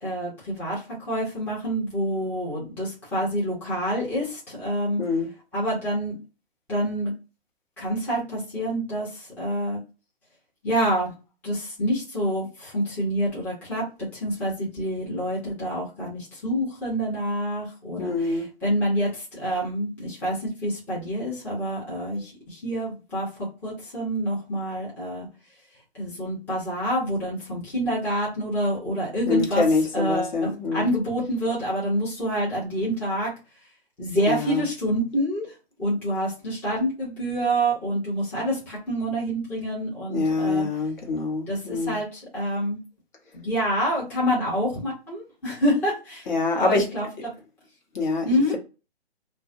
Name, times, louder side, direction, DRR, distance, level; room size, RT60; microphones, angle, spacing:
voice 1, 0.0-5.0 5.5-6.1 6.7-7.1 7.8-9.8 10.6-11.1 11.4-13.8 14.1-25.3 25.9-33.3 34.0-35.5 35.8-40.7 41.5-42.8 43.3-47.3 48.2-48.6, equal, 5° left, 0.7 m, -27 dB
voice 2, 18.0-18.5 29.3-30.9 34.3-34.6 40.1-42.0 46.3-46.9 47.9-48.3, left 3 dB, 45° left, 1.0 m, -25 dB
2.2 x 2.1 x 2.6 m
figure-of-eight pair, 140°, 33 cm